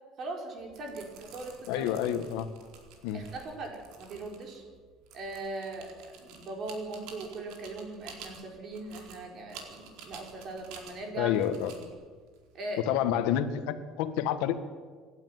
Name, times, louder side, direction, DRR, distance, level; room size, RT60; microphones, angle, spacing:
voice 1, 0.2-1.9 3.1-4.6 5.1-11.4 12.5-13.1, right 2 dB, 45° right, 2 dB, 5.2 m, -40 dB
sound 1, 0.6-13.3, right 5 dB, 75° right, 4.3 m, -51 dB
voice 2, 1.7-2.5 3.0-3.2 11.2-11.9 12.9-14.6, left 10 dB, 90° left, 9 dB, 1.7 m, -29 dB
27.0 x 12.0 x 9.5 m, 1.5 s
cardioid pair, 150°, 0 cm